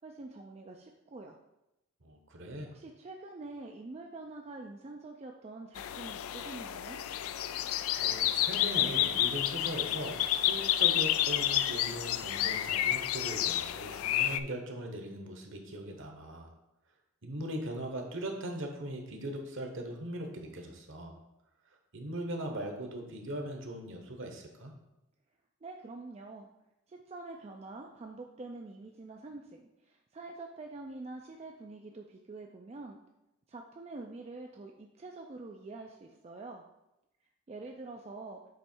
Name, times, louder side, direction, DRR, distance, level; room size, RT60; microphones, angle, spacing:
voice 1, 0.0-1.4 2.7-7.0 25.6-26.5 26.9-33.0 33.5-36.6 37.5-38.4, right 3 dB, 30° right, 2 dB, 0.3 m, -46 dB
voice 2, 2.0-2.7 8.0-16.5 17.2-21.2 21.9-24.7, right 1 dB, 60° right, 3 dB, 1.0 m, -40 dB
sound 1, 5.8-14.4, left 12 dB, 75° left, 0.3 m, -30 dB
7.7 x 3.1 x 4.5 m, 0.91 s
head